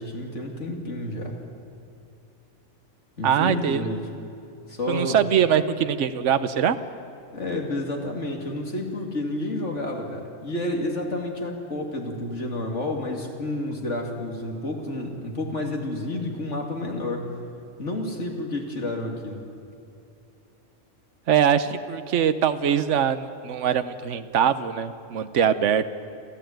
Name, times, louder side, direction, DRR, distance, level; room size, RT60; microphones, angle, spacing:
voice 1, 0.0-1.4 3.2-4.1 4.7-5.2 7.3-17.4 17.8-19.4, left 1 dB, 75° left, 2 dB, 2.9 m, -30 dB
voice 2, 3.2-3.8 4.9-6.8 21.3-25.9, right 8 dB, 80° right, 11 dB, 1.2 m, -22 dB
27.5 x 15.0 x 9.2 m, 2.6 s
omnidirectional pair, 1.2 m